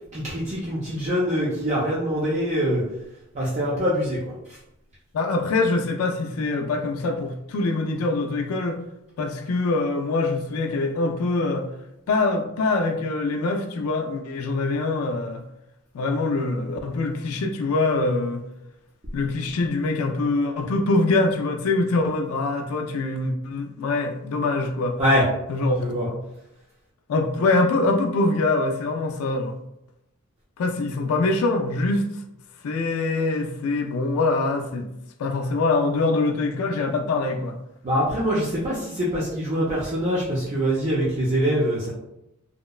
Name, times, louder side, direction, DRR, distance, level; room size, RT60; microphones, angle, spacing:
voice 1, 0.1-2.8 3.3-4.3 25.0-25.2 25.8-26.1 37.8-41.9, equal, 35° right, -7 dB, 0.5 m, -24 dB
voice 2, 5.1-8.8 9.2-11.7 12.1-15.4 15.9-18.4 19.1-25.0 25.5-26.1 27.1-29.6 30.6-32.1 32.6-34.9 35.2-37.6, left 3 dB, 90° left, 4 dB, 0.3 m, -24 dB
2.8 x 2.1 x 2.2 m, 0.85 s
head